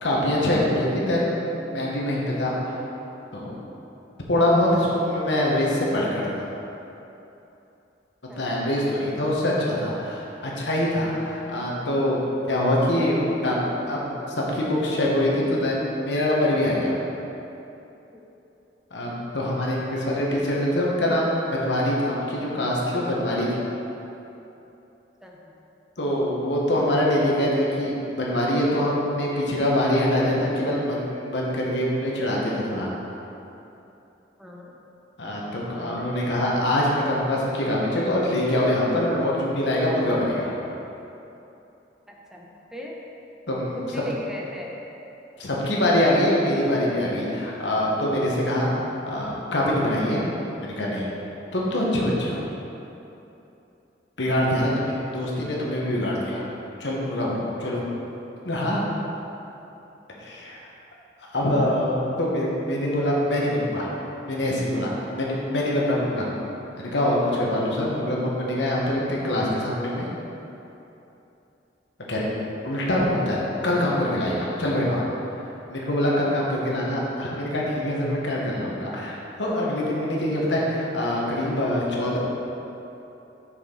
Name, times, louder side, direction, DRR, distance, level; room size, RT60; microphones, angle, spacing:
voice 1, 0.0-2.7 3.3-3.5 4.3-6.5 8.4-12.2 12.5-13.6 13.9-14.1 14.5-16.9 18.9-23.5 26.0-32.9 35.2-40.5 43.5-43.8 45.4-48.7 49.1-50.2 50.6-51.1 51.5-52.4 54.2-56.4 56.8-57.8 58.4-58.8 60.2-60.6 61.3-63.9 64.3-66.3 66.8-70.1 72.1-72.3 72.6-75.0 75.7-82.2, left 1 dB, 85° left, -4 dB, 1.3 m, -24 dB
voice 2, 25.2-25.5 34.4-34.7 36.0-36.1 42.1-43.0 43.8-44.8 65.0-65.2, left 1 dB, 5° right, -2 dB, 0.7 m, -38 dB
6.3 x 6.2 x 3.8 m, 3.0 s
head